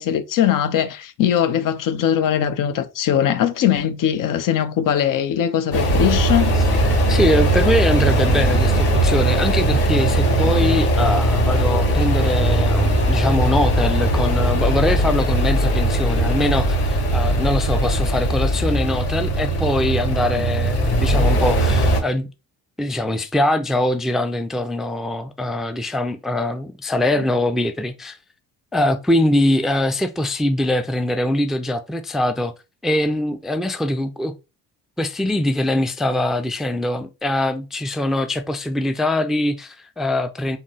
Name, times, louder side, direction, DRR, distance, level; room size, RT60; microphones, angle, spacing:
voice 1, 0.0-6.5, left 10 dB, 65° left, 0.6 m, -20 dB
sound 1, 5.7-22.0, right 1 dB, 40° left, 2.1 m, -19 dB
voice 2, 6.8-22.3 22.8-28.2 28.7-32.5 32.8-34.3 35.0-40.6, left 1 dB, ahead, 0.3 m, -22 dB
3.7 x 2.0 x 3.8 m
cardioid pair, 90°, 36 cm